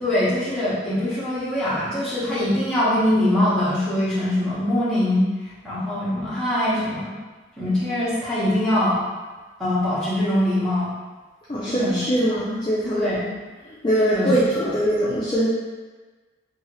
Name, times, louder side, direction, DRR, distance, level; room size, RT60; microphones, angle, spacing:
voice 1, 0.0-7.1 7.6-9.0 9.6-10.9 11.7-12.0 12.9-13.2 14.0-14.3, left 1 dB, 5° left, -12 dB, 0.9 m, -23 dB
voice 2, 11.5-13.3 13.6-15.5, equal, 25° left, -9 dB, 0.4 m, -22 dB
2.7 x 2.7 x 3.0 m, 1.3 s
head